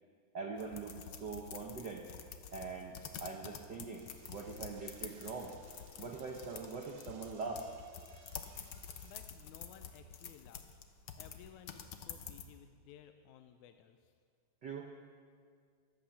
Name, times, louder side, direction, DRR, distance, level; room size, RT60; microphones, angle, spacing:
voice 1, 0.3-2.1 2.5-5.5 6.0-7.7 14.6-14.9, right 4 dB, 65° right, 1 dB, 1.0 m, -43 dB
sound 1, 0.6-12.5, left 8 dB, 65° left, 1.4 m, -49 dB
Door / Toilet flush, 3.9-9.2, right 5 dB, 90° right, 3.0 m, -63 dB
voice 2, 9.0-10.8 11.1-14.0, left 10 dB, 80° left, 7 dB, 2.1 m, -57 dB
23.0 x 8.8 x 7.0 m, 2.1 s
omnidirectional pair, 3.4 m